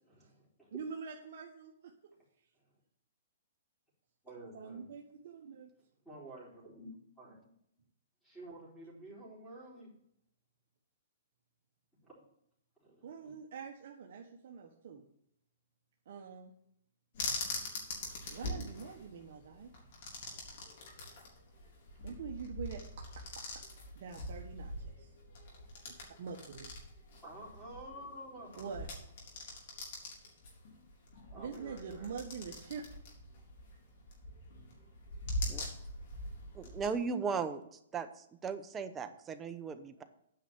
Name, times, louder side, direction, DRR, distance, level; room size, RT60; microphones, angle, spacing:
voice 1, 0.0-0.7 2.5-2.6 4.2-4.9 6.0-7.5 8.2-9.9 12.0-12.1 12.8-13.3 19.5-19.9 27.2-28.7 31.3-32.1 35.6-35.7 39.8-40.0, right 1 dB, 5° left, -7 dB, 4.4 m, -51 dB
voice 2, 0.7-1.9 4.5-5.7 13.0-15.0 16.1-16.5 18.3-19.7 22.0-23.4 23.9-25.1 25.9-26.7 28.6-28.9 31.3-32.8, right 6 dB, 60° right, 1 dB, 1.2 m, -45 dB
sound 1, 17.1-36.9, left 1 dB, 55° left, 3.8 m, -43 dB
voice 3, 36.5-37.6 37.9-38.1 38.4-40.0, right 5 dB, 15° right, 8 dB, 0.7 m, -36 dB
9.3 x 5.7 x 7.6 m, 0.73 s
hypercardioid pair, 160°, 0 cm